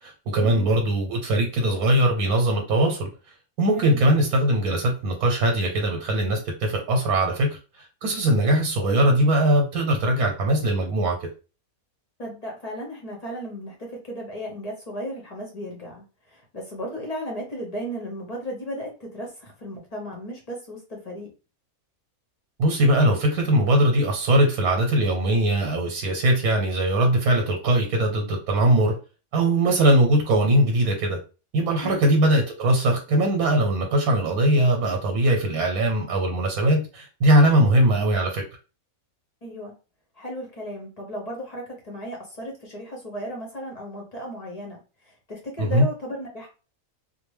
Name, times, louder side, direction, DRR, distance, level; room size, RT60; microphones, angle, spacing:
voice 1, 0.0-3.1 3.6-11.3 22.6-29.0 29.3-31.2 31.5-38.4 45.6-45.8, right 1 dB, 85° right, 2 dB, 1.1 m, -21 dB
voice 2, 12.2-21.3 31.8-32.0 39.4-39.7 40.1-46.5, equal, 45° left, -1 dB, 0.5 m, -35 dB
2.5 x 2.1 x 3.1 m, 0.34 s
omnidirectional pair, 1.6 m